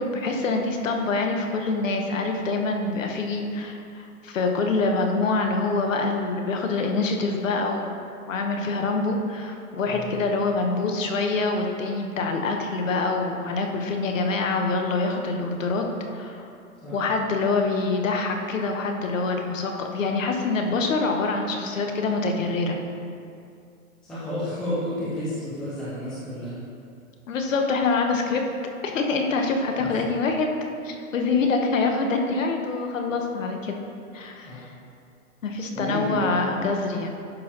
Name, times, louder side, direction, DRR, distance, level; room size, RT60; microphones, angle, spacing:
voice 1, 0.0-8.0 8.3-15.8 16.1-16.5 16.9-22.8 27.3-28.4 28.8-30.5 30.8-33.7 34.1-34.7 35.4-37.1, left 3 dB, 60° left, 3 dB, 1.2 m, -25 dB
voice 2, 24.0-26.6 29.8-30.0 34.4-34.6 35.7-36.3, equal, ahead, -11 dB, 0.6 m, -31 dB
11.5 x 6.6 x 3.0 m, 2.4 s
hypercardioid pair, 155°, 44 cm